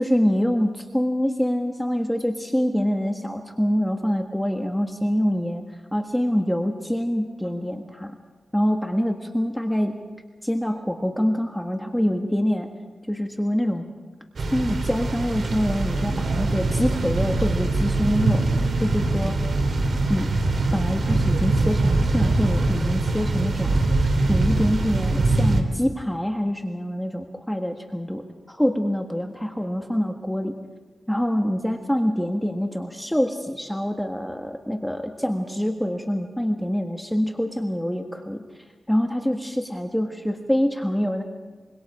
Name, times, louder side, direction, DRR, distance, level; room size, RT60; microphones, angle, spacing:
voice 1, 0.0-5.6 5.9-8.1 8.5-9.9 10.4-12.7 13.1-13.8 14.5-18.4 18.8-19.4 20.1-20.3 20.7-23.8 24.3-30.5 31.1-38.4 38.9-41.2, equal, 5° left, 3 dB, 1.5 m, -25 dB
sound 1, 14.4-25.6, right 2 dB, 65° right, 3.1 m, -23 dB
25.5 x 24.0 x 5.0 m, 1.4 s
wide cardioid pair, 90°, 0 cm